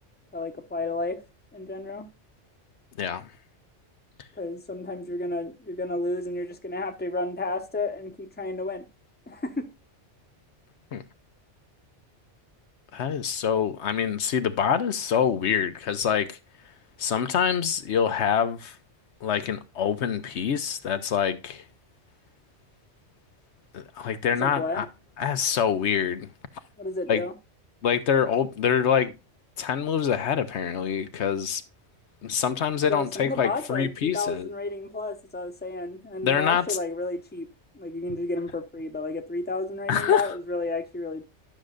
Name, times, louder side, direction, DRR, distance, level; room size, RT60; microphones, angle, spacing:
voice 1, 0.3-1.2 1.5-2.1 4.4-8.9 9.3-9.7 24.4-24.9 26.8-27.3 32.9-37.5 37.7-41.3, left 2 dB, 10° left, 0.9 m, -32 dB
voice 2, 3.0-3.3 10.9-11.0 12.9-16.4 17.0-18.8 19.2-21.6 23.7-24.9 25.2-26.3 27.1-27.2 27.8-29.1 29.6-31.6 32.2-34.5 36.2-36.8 39.9-40.3, left 8 dB, 70° left, 1.0 m, -25 dB
12.0 x 6.4 x 2.4 m
omnidirectional pair, 1.2 m